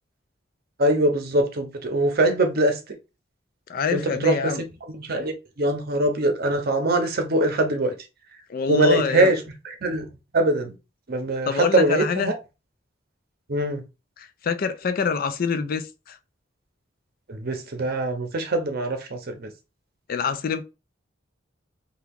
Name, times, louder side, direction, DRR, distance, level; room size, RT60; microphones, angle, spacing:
voice 1, 0.8-2.8 3.9-4.6 5.0-7.9 8.7-10.1 10.3-10.8 11.1-12.3 13.5-13.8 17.3-19.5, right 1 dB, 55° right, 0.7 m, -23 dB
voice 2, 3.7-4.6 8.5-9.3 11.5-12.3 14.2-16.2 20.1-20.6, left 5 dB, 50° left, 0.4 m, -26 dB
2.8 x 2.3 x 3.5 m
head